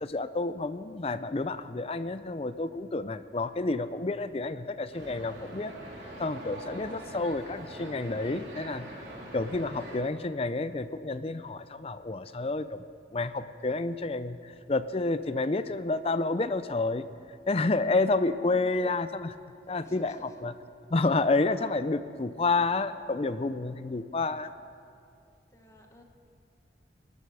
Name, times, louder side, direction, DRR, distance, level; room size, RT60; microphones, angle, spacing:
voice 1, 0.0-5.7 6.2-9.0 9.3-12.8 13.1-17.0 17.5-19.3 19.7-20.5 20.9-24.5, left 3 dB, 35° left, 13 dB, 0.5 m, -29 dB
sound 1, 4.9-10.0, right 1 dB, 80° right, 3.1 m, -43 dB
voice 2, 18.1-18.7 19.8-20.4 25.5-26.0, equal, 15° left, 3 dB, 1.2 m, -53 dB
20.0 x 12.5 x 4.8 m, 2.5 s
head